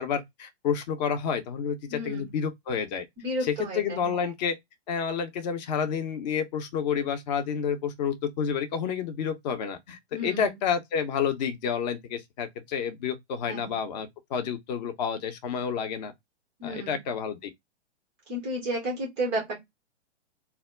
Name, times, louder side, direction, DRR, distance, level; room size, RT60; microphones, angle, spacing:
voice 1, 0.0-3.0 3.4-4.6 4.9-16.1 16.6-17.5, left 7 dB, 40° left, 0.6 m, -29 dB
voice 2, 1.9-2.3 3.2-4.3 10.1-10.6 13.5-13.8 16.6-17.0 18.3-19.6, right 1 dB, 15° right, 0.3 m, -32 dB
2.2 x 2.0 x 3.4 m
figure-of-eight pair, 115°, 35 cm